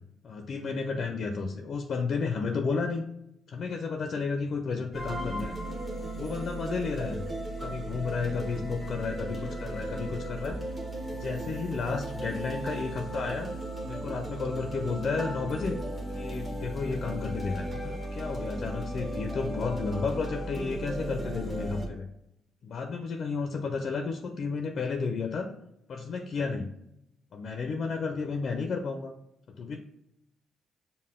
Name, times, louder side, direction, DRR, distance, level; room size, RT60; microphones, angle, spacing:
voice 1, 0.2-3.0 3.5-5.5 6.2-7.2 7.6-10.6 11.1-13.5 13.8-15.8 16.1-22.1 22.6-25.5 25.9-26.7 27.3-29.1 29.6-29.8, left 4 dB, 55° left, 5 dB, 0.4 m, -32 dB
sound 1, 4.9-21.9, right 1 dB, 25° right, 1.1 m, -36 dB
5.5 x 2.1 x 3.6 m, 0.82 s
cardioid pair, 90°, 0 cm